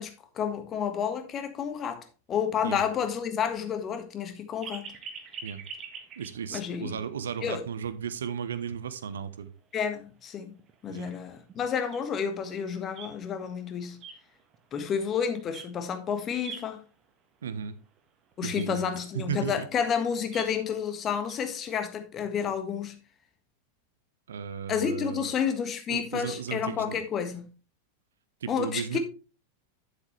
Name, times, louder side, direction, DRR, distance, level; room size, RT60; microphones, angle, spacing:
voice 1, 0.0-4.9 6.5-7.0 7.4-7.6 9.7-10.6 10.8-14.0 14.7-16.8 18.4-22.9 24.7-27.5 28.5-29.0, left 7 dB, 30° left, 1.6 m, -30 dB
sound 1, 4.6-6.8 7.2-7.3 7.8-7.9 9.2-9.3 9.7-9.8 10.2-10.3 10.6-13.5 13.9-15.1 15.4-15.9 16.2-17.1 17.6-17.7 18.0-18.1 18.3-21.3, right 5 dB, 30° right, 1.6 m, -45 dB
voice 2, 6.2-9.5 10.9-11.2 17.4-17.8 18.4-19.7 20.5-20.6 24.3-25.3 25.9-27.0 28.4-29.0, right 7 dB, 65° right, 0.9 m, -35 dB
9.7 x 7.7 x 3.2 m
figure-of-eight pair, 90°, 0 cm